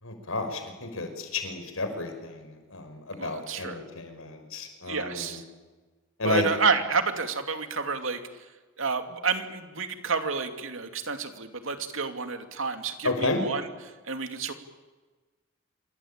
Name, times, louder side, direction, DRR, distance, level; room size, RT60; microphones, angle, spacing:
voice 1, 0.0-5.4 6.2-6.4 13.0-13.4, left 2 dB, 90° left, 6 dB, 5.5 m, -32 dB
voice 2, 3.2-3.8 4.9-5.4 6.2-8.2 8.8-13.7 14.0-14.5, right 5 dB, 75° right, 7 dB, 2.6 m, -29 dB
27.0 x 24.5 x 8.9 m, 1.3 s
head